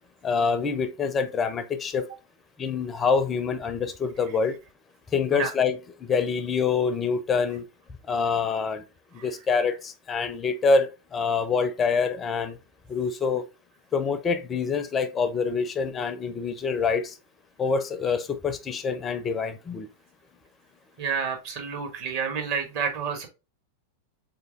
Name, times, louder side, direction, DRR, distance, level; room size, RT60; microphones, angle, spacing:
voice 1, 0.2-2.1 2.6-4.6 5.1-7.7 8.1-8.8 9.2-12.6 12.9-13.4 13.9-17.2 17.6-19.9, left 5 dB, 20° left, 0.4 m, -26 dB
voice 2, 21.0-23.3, right 6 dB, 45° right, 1.2 m, -29 dB
3.8 x 3.3 x 2.4 m
figure-of-eight pair, 90°, 0 cm